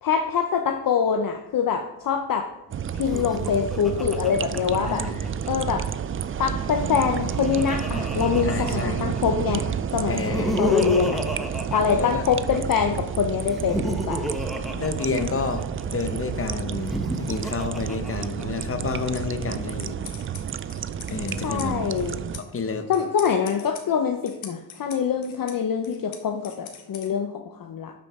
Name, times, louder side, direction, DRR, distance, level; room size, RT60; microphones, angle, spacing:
voice 1, 0.0-2.5 2.9-5.1 5.5-5.9 6.4-11.2 11.7-14.2 21.4-22.2 22.9-27.3 27.6-27.9, left 7 dB, 45° left, 5 dB, 0.8 m, -24 dB
sound 1, 2.7-22.4, right 8 dB, 30° right, 0.4 m, -30 dB
Laughter, 3.0-5.5 6.8-9.2 10.1-12.6 13.4-15.8 16.7-18.6, left 1 dB, ahead, 1.1 m, -31 dB
voice 2, 4.8-5.3 8.4-9.1 10.1-10.7 11.8-12.2 14.7-20.0 21.1-21.9 22.4-22.9, left 4 dB, 30° left, 7 dB, 1.2 m, -30 dB
sound 2, 19.0-27.1, left 8 dB, 75° left, 1.5 m, -45 dB
12.0 x 5.2 x 3.7 m, 0.94 s
supercardioid pair, 70°, 46 cm